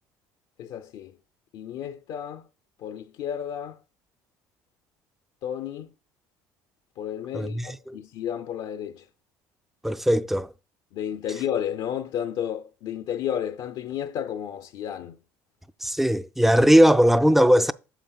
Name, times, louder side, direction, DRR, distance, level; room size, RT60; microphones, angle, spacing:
voice 1, 0.6-1.1 1.5-2.4 2.8-3.8 5.4-5.9 7.0-9.0 10.9-15.1, left 9 dB, 65° left, 0.5 m, -32 dB
voice 2, 7.3-8.0 9.8-10.5 15.8-17.7, equal, 5° right, 0.4 m, -19 dB
9.0 x 7.1 x 2.3 m
supercardioid pair, 75°, 9 cm